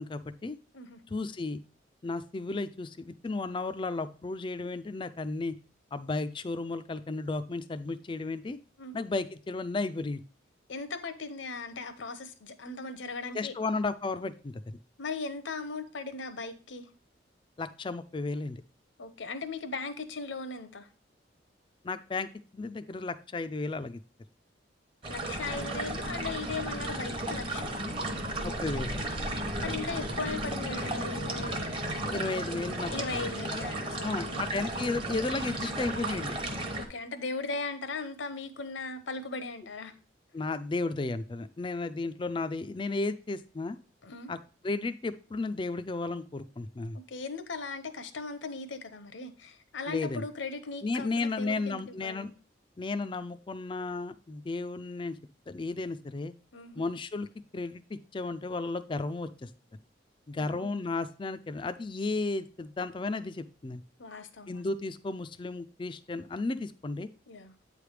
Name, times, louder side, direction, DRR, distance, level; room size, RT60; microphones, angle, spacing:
voice 1, 0.0-0.6 1.1-1.6 2.0-5.5 5.9-8.6 8.9-10.2 13.3-14.8 17.6-18.6 21.8-24.0 28.4-29.1 32.1-33.3 34.0-36.3 40.3-43.8 44.3-44.4 44.6-47.0 49.9-50.3 50.8-52.3 52.8-55.1 55.5-56.3 56.8-57.3 57.5-59.5 60.3-63.8 64.5-67.1, left 3 dB, 25° left, 12 dB, 0.4 m, -34 dB
voice 2, 10.7-13.5 15.0-16.9 19.0-20.9 25.1-27.7 29.6-31.8 32.9-34.4 36.7-39.9 44.0-44.3 47.1-52.3 56.5-56.8 60.4-60.9 64.0-64.6 67.3-67.5, left 3 dB, 80° left, 11 dB, 0.8 m, -38 dB
sound 1, 25.0-36.8, right 1 dB, 30° right, 0.9 m, -34 dB
8.6 x 3.3 x 4.8 m, 0.37 s
head